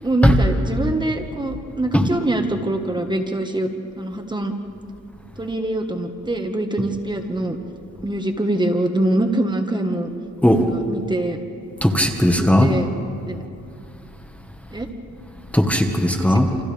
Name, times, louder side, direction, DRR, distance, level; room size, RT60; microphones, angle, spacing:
voice 1, 0.0-3.7 4.0-4.5 5.4-7.6 8.0-10.1 10.7-11.4 12.3-12.9 13.2-13.4 14.7-14.9 16.2-16.6, right 1 dB, 15° right, 5 dB, 1.6 m, -24 dB
voice 2, 11.8-12.7 15.5-16.5, left 1 dB, 5° left, 4 dB, 1.5 m, -16 dB
28.5 x 27.0 x 3.5 m, 2.6 s
cardioid pair, 90°, 30 cm